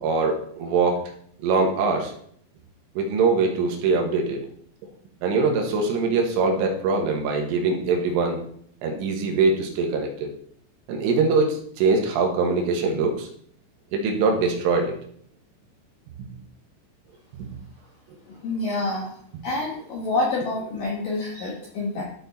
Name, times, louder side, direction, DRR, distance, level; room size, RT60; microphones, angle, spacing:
voice 1, 0.0-1.0 1.4-2.1 3.0-4.4 5.2-8.4 8.8-10.3 10.9-13.3 13.9-14.9, right 4 dB, 80° right, 2 dB, 3.8 m, -22 dB
voice 2, 18.3-19.1 19.4-22.0, left 2 dB, 75° left, -3 dB, 2.0 m, -27 dB
13.0 x 4.4 x 4.1 m, 0.64 s
omnidirectional pair, 5.7 m